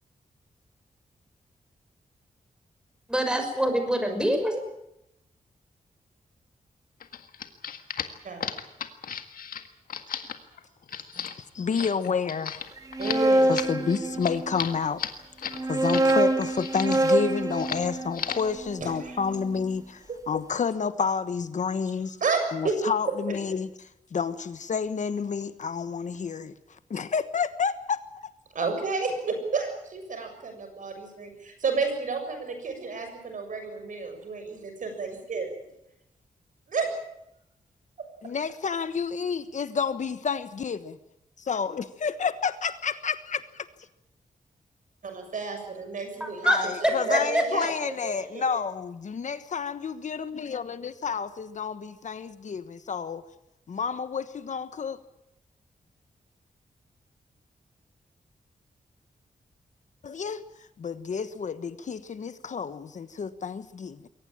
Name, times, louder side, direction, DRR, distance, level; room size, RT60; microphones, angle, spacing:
voice 1, 3.1-4.6 46.2-46.7 47.1-47.4, equal, 5° right, 5 dB, 6.0 m, -25 dB
sound 1, 7.0-16.1 16.4-17.2 17.5-17.9 18.1-18.5, left 7 dB, 90° left, 1.8 m, -35 dB
voice 2, 11.4-12.6 13.5-15.0 15.7-22.2 22.5-26.5 26.9-28.0 38.2-41.0 41.4-43.7 46.4-53.2 53.7-55.0 60.0-60.4 60.8-64.1, left 6 dB, 60° left, 12 dB, 1.3 m, -30 dB
sound 2, 12.8-14.7 15.5-19.6, right 1 dB, 25° right, 2.3 m, -26 dB
voice 3, 13.0-13.5 18.8-19.2 20.1-20.2 22.2-22.7 28.5-35.7 36.7-36.9 45.0-46.5 46.8-48.5, right 4 dB, 65° right, 6 dB, 6.9 m, -31 dB
22.5 x 18.5 x 8.9 m, 0.81 s
wide cardioid pair, 110°, 14 cm